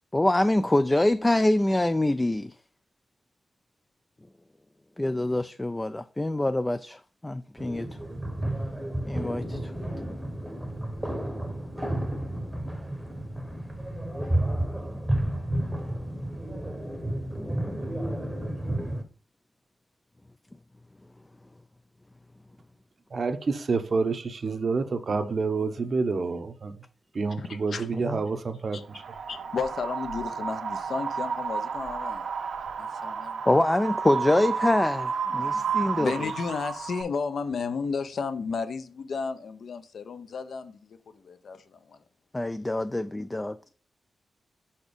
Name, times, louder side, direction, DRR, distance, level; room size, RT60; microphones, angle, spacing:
voice 1, 0.1-2.5 5.0-7.9 9.1-9.7 10.0-10.1 17.3-17.8 28.1-28.2 33.5-36.3 42.3-43.6, left 1 dB, 15° left, 0.3 m, -25 dB
sound 1, 7.6-19.0, right 1 dB, 5° right, 0.9 m, -31 dB
voice 2, 23.1-26.7 27.1-29.0, right 4 dB, 45° right, 0.7 m, -28 dB
voice 3, 27.4-27.9 28.7-32.3 32.8-33.4 35.3-41.0 41.2-42.0, left 5 dB, 65° left, 0.7 m, -33 dB
Wind, 28.9-37.0, right 6 dB, 75° right, 0.9 m, -32 dB
5.9 x 4.3 x 5.0 m
wide cardioid pair, 120°, 0 cm